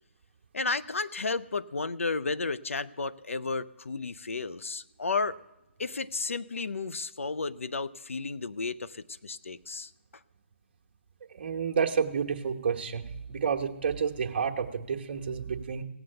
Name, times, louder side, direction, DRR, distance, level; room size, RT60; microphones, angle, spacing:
voice 1, 0.5-5.4 5.8-9.9, left 4 dB, 85° left, 17 dB, 0.5 m, -33 dB
voice 2, 11.3-13.0 13.3-15.8, right 6 dB, 50° right, 3 dB, 1.1 m, -30 dB
17.0 x 7.9 x 7.8 m, 1.1 s
hypercardioid pair, 150°, 7 cm